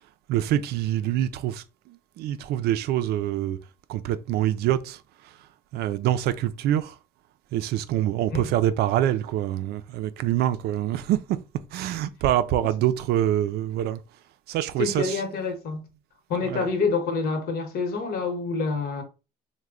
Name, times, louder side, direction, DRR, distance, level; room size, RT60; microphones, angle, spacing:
voice 1, 0.3-3.6 3.9-5.3 5.7-7.0 7.5-11.4 11.7-14.0 14.5-15.2 16.4-16.7, right 12 dB, 75° right, 0.4 m, -25 dB
voice 2, 14.8-15.8 16.3-19.0, left 4 dB, 65° left, 1.0 m, -27 dB
3.2 x 2.1 x 3.6 m
cardioid pair, 110°, 17 cm